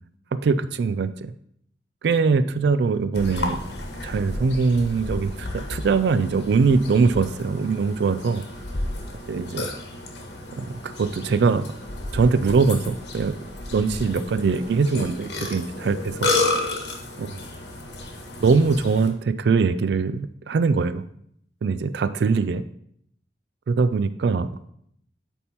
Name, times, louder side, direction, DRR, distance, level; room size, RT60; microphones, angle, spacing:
voice 1, 0.4-1.3 2.0-3.6 4.0-8.4 9.3-9.7 10.6-11.7 12.1-13.4 13.7-16.3 17.2-17.4 18.4-21.0 21.6-22.6 23.8-24.5, right 4 dB, 75° right, 14 dB, 0.3 m, -22 dB
Burping eructation, 3.1-19.1, left 2 dB, 80° left, 1.2 m, -32 dB
8.5 x 3.6 x 4.2 m, 0.69 s
head